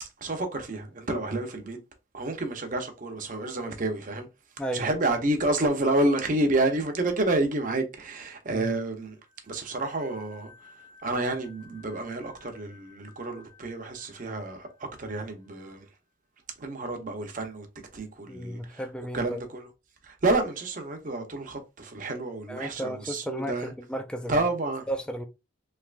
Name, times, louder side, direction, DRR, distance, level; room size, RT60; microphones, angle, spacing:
voice 1, 0.0-1.8 2.1-4.3 4.7-9.1 9.5-10.7 11.0-14.7 15.0-15.9 16.6-17.7 17.9-18.8 19.1-19.7 20.0-23.7 24.3-24.9, right 2 dB, 40° right, 0.7 m, -29 dB
sound 1, 9.2-15.7, left 5 dB, 65° left, 1.5 m, -56 dB
voice 2, 18.3-19.4 22.5-24.5 24.9-25.2, right 1 dB, 5° left, 0.3 m, -34 dB
3.3 x 2.9 x 2.4 m
head